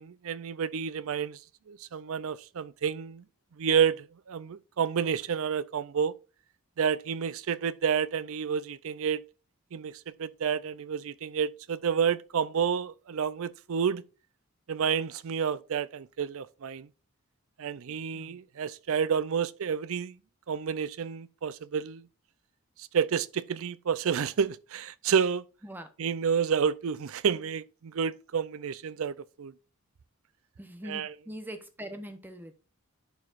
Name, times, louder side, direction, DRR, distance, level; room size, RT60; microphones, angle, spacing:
voice 1, 0.0-1.4 1.7-3.2 3.6-6.1 6.8-9.2 9.7-9.9 10.2-14.0 14.7-16.9 17.6-20.1 20.5-22.0 22.9-25.4 26.0-29.5 30.9-31.1, right 7 dB, 65° right, 0.5 m, -29 dB
voice 2, 30.6-32.6, equal, 10° right, 0.9 m, -42 dB
11.0 x 4.8 x 2.5 m
head